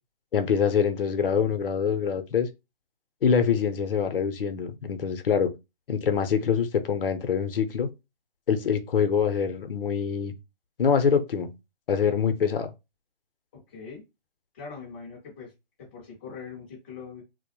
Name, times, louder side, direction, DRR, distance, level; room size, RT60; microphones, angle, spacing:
voice 1, 0.3-2.5 3.2-5.5 5.9-7.9 8.5-10.3 10.8-11.5 11.9-12.7, left 6 dB, 65° left, 0.6 m, -24 dB
voice 2, 13.5-14.0 14.5-15.5 15.8-17.2, left 5 dB, 15° left, 0.4 m, -42 dB
2.2 x 2.0 x 2.8 m
hypercardioid pair, 150°, 30 cm